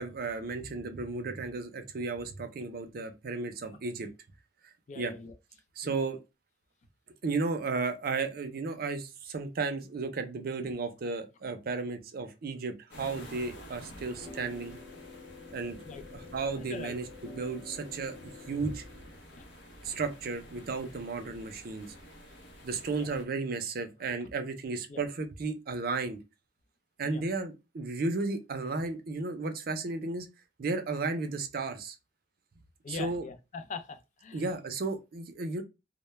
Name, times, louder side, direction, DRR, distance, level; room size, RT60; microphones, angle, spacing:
voice 1, 0.0-4.1 4.6-5.1 5.8-6.2 7.2-14.8 15.5-15.8 16.1-18.8 19.8-21.9 22.6-26.2 27.0-30.3 30.6-32.0 32.9-33.2 34.3-35.6, right 3 dB, 55° right, 0.5 m, -34 dB
voice 2, 4.9-5.3 5.8-6.0 10.6-10.7 13.9-14.3 15.8-16.0 16.6-16.9 19.3-19.4 23.0-23.1 24.0-24.1 24.9-25.0 27.0-27.2 32.8-34.4, left 4 dB, 45° left, 0.4 m, -43 dB
sound 1, 12.9-23.2, equal, 75° left, 0.7 m, -50 dB
sound 2, 14.2-19.1, left 4 dB, 10° left, 0.9 m, -49 dB
2.1 x 2.1 x 3.0 m
head